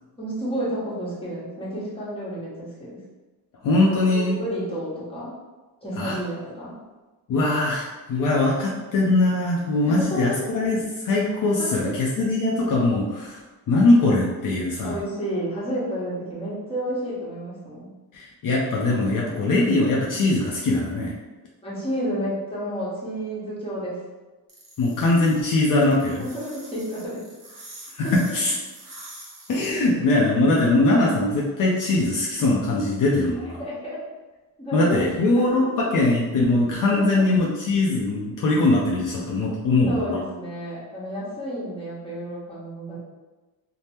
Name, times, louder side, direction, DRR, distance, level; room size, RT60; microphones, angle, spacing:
voice 1, 0.2-3.0 3.8-5.3 5.8-6.7 10.0-10.2 11.6-12.0 14.8-17.9 21.6-24.0 26.2-27.2 28.0-28.4 33.6-34.0 34.6-35.0 35.4-35.7 36.9-37.2 39.9-43.0, equal, 15° left, -7 dB, 1.0 m, -31 dB
voice 2, 3.6-4.4 6.0-6.2 7.3-13.4 13.7-15.0 18.1-21.1 24.8-26.3 27.9-28.5 29.5-33.6 34.7-40.2, left 2 dB, 55° left, -4 dB, 0.5 m, -21 dB
sound 1, 24.5-29.7, right 1 dB, 45° right, 1.0 m, -45 dB
2.8 x 2.1 x 3.4 m, 1.2 s
cardioid pair, 135°, 38 cm